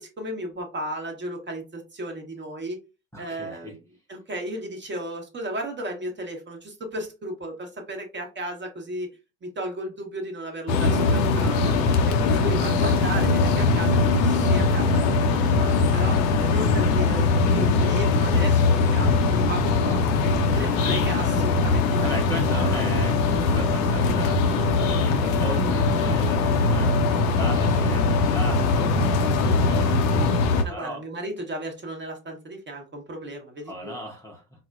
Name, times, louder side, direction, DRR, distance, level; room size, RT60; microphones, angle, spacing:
voice 1, 0.0-2.8 3.2-3.8 4.1-9.1 9.4-11.7 12.2-22.2 30.6-33.9, right 1 dB, 25° right, 2 dB, 1.1 m, -35 dB
voice 2, 3.1-3.8 20.5-20.8 22.0-31.0 33.7-34.4, equal, 5° left, -2 dB, 0.8 m, -37 dB
sound 1, 10.7-30.6, left 3 dB, 65° left, 0.7 m, -21 dB
4.1 x 2.1 x 2.4 m, 0.29 s
hypercardioid pair, 70°, 42 cm